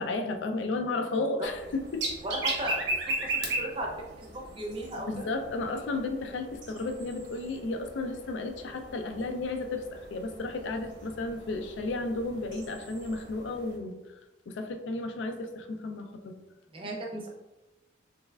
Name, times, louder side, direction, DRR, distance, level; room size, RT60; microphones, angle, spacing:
voice 1, 0.0-2.1 2.5-2.7 5.0-14.0 14.5-16.4, left 2 dB, 75° left, 6 dB, 0.4 m, -33 dB
sound 1, 1.4-13.8, right 2 dB, 75° right, 0.8 m, -38 dB
voice 2, 2.2-2.9 3.2-3.9 4.2-5.3 16.7-17.3, right 1 dB, 30° right, -1 dB, 0.6 m, -36 dB
3.3 x 3.1 x 2.3 m, 1.1 s
head